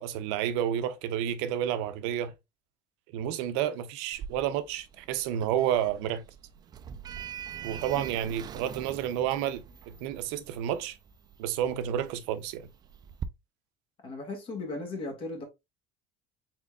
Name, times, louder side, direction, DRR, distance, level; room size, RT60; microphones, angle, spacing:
voice 1, 0.0-2.3 3.1-6.2 7.6-11.0 11.4-12.7, right 10 dB, 85° right, 0.6 m, -30 dB
Sliding door, 4.1-13.3, right 8 dB, 30° right, 0.3 m, -44 dB
voice 2, 14.0-15.4, left 2 dB, 40° left, 1.8 m, -36 dB
4.1 x 3.7 x 2.3 m
cardioid pair, 130°, 14 cm